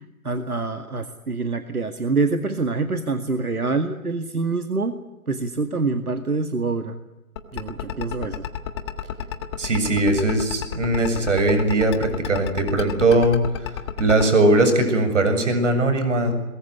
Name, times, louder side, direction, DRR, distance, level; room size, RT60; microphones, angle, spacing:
voice 1, 0.0-5.0 5.3-7.0 7.5-8.5, right 3 dB, 85° right, 8 dB, 2.1 m, -26 dB
sound 1, 7.4-14.2, left 10 dB, 20° left, 1.5 m, -30 dB
voice 2, 9.6-13.4 14.0-16.3, right 2 dB, 55° right, 8 dB, 7.5 m, -20 dB
23.0 x 22.0 x 9.9 m, 1.1 s
figure-of-eight pair, 150°, 43 cm